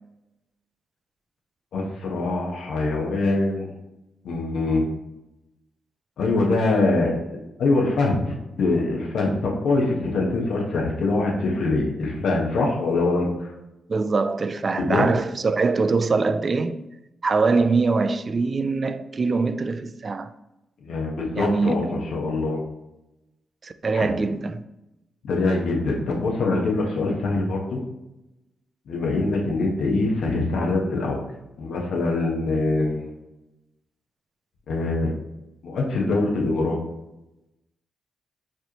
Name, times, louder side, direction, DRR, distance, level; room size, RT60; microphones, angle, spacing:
voice 1, 1.7-3.7 4.2-4.8 6.2-7.1 7.6-13.5 14.7-15.1 20.8-22.6 23.9-24.1 25.2-27.8 28.9-31.2 31.6-33.1 34.7-35.1 35.6-36.8, left 2 dB, 75° left, 0.9 m, -23 dB
voice 2, 13.9-16.8 17.2-20.3 21.4-21.9 23.6-24.6, right 4 dB, 45° right, 0.3 m, -23 dB
4.4 x 3.1 x 2.9 m
supercardioid pair, 50°, 0 cm